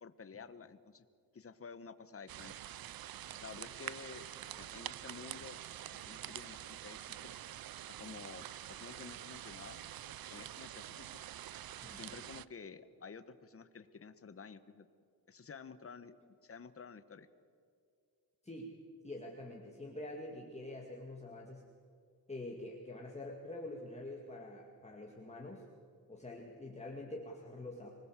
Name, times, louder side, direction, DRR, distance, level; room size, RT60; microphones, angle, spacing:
voice 1, 0.0-1.0 1.3-2.5 3.4-4.2 4.5-5.6 5.9-7.4 8.0-9.9 10.3-11.2 11.9-14.9 15.3-16.1 16.4-17.3, left 5 dB, 35° left, 11 dB, 1.2 m, -51 dB
sound 1, 2.3-12.5, right 12 dB, 65° right, 0.6 m, -47 dB
voice 2, 11.8-12.1 18.4-18.7 19.0-21.6 22.3-25.7 26.1-27.9, left 1 dB, 15° left, -1 dB, 2.2 m, -46 dB
25.0 x 19.5 x 7.5 m, 2.3 s
wide cardioid pair, 115°, 38 cm